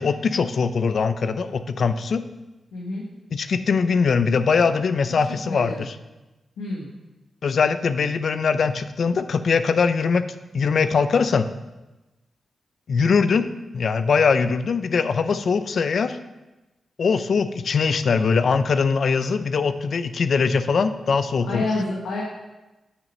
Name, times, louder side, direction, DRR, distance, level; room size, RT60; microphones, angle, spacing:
voice 1, 0.0-2.2 3.3-5.9 7.4-10.2 10.5-11.5 12.9-16.2 17.0-21.7, left 5 dB, 65° left, 12 dB, 0.5 m, -21 dB
voice 2, 2.7-3.0 5.1-5.9 6.6-6.9 21.4-22.2, left 2 dB, 85° left, -4 dB, 1.2 m, -29 dB
6.6 x 5.9 x 5.3 m, 1.1 s
supercardioid pair, 40°, 0 cm